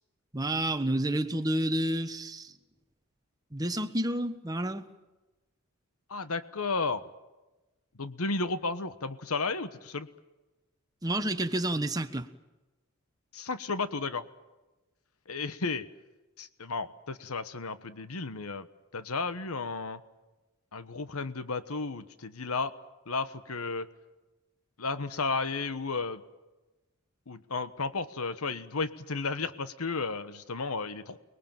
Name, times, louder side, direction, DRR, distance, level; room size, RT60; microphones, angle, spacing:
voice 1, 0.3-2.5 3.5-4.9 11.0-12.3, right 1 dB, 15° right, 1.4 m, -30 dB
voice 2, 6.1-7.0 8.0-10.1 13.3-14.3 15.3-15.9 16.4-18.7 18.9-20.0 20.7-22.7 23.1-23.9 24.8-26.2 27.3-31.2, left 4 dB, 85° left, 1.3 m, -33 dB
29.5 x 21.5 x 7.5 m
head